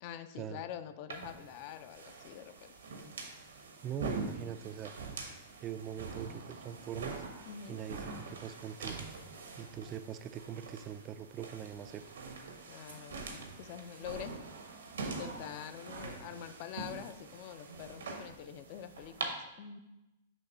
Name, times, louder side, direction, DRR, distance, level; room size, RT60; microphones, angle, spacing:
voice 1, 0.0-2.7 7.5-7.8 12.7-14.4 15.0-19.8, left 9 dB, 50° left, 11 dB, 0.5 m, -46 dB
sound 1, 1.1-19.3, right 4 dB, 85° right, 1.1 m, -44 dB
voice 2, 3.8-4.9 5.6-7.2 7.7-9.1 9.6-12.0, right 9 dB, 30° right, 13 dB, 0.3 m, -42 dB
6.1 x 3.0 x 5.5 m, 0.96 s
hypercardioid pair, 120°, 0 cm